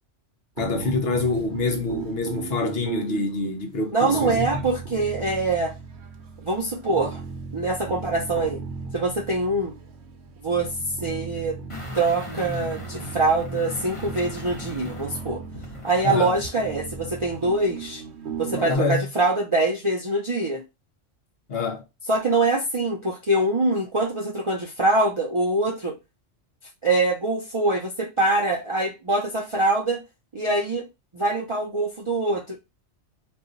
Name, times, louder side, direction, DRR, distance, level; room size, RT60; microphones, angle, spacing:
voice 1, 0.6-4.7 16.0-16.4 18.5-19.1 21.5-21.8, left 3 dB, 60° left, 0.9 m, -26 dB
sound 1, 0.6-18.8, right 5 dB, 70° right, 0.9 m, -37 dB
voice 2, 3.9-5.7 6.4-7.2 7.5-8.6 8.9-9.7 10.4-10.7 11.0-11.6 11.9-15.4 15.8-18.0 18.4-20.6 22.1-25.9 26.8-30.0 30.3-30.8 31.1-32.6, right 2 dB, 45° right, 0.4 m, -24 dB
sound 2, 11.7-16.6 16.9-17.0, left 2 dB, 30° left, 0.8 m, -38 dB
2.7 x 2.4 x 3.8 m
omnidirectional pair, 1.2 m